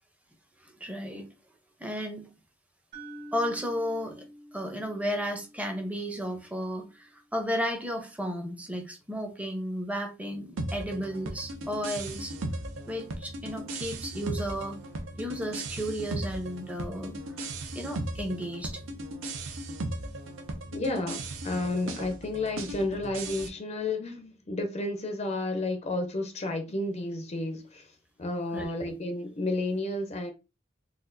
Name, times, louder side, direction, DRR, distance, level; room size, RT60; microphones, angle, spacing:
voice 1, 0.6-1.3 1.8-2.3 3.3-4.2 4.5-12.3 12.9-14.8 15.2-17.2 17.7-18.8 28.5-28.7, equal, 5° right, 0.6 m, -33 dB
sound 1, 2.9-7.0, right 1 dB, 55° right, 1.3 m, -48 dB
sound 2, 10.6-23.5, right 1 dB, 85° right, 0.6 m, -37 dB
voice 2, 20.7-30.3, left 2 dB, 35° left, 0.5 m, -32 dB
4.0 x 2.3 x 2.6 m
head